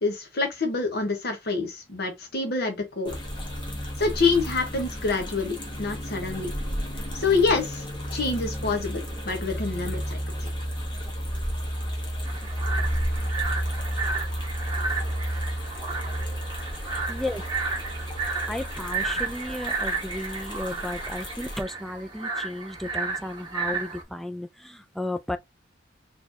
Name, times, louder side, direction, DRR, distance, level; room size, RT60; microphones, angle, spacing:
voice 1, 0.0-3.2 4.0-6.5 7.1-7.8 8.1-10.2, left 4 dB, 55° left, 1.2 m, -26 dB
sound 1, 3.0-21.6, equal, 25° left, 1.4 m, -32 dB
sound 2, 12.2-24.0, right 4 dB, 25° right, 1.2 m, -33 dB
voice 2, 17.1-17.4 18.5-25.4, left 1 dB, ahead, 0.4 m, -34 dB
4.3 x 3.4 x 2.9 m
head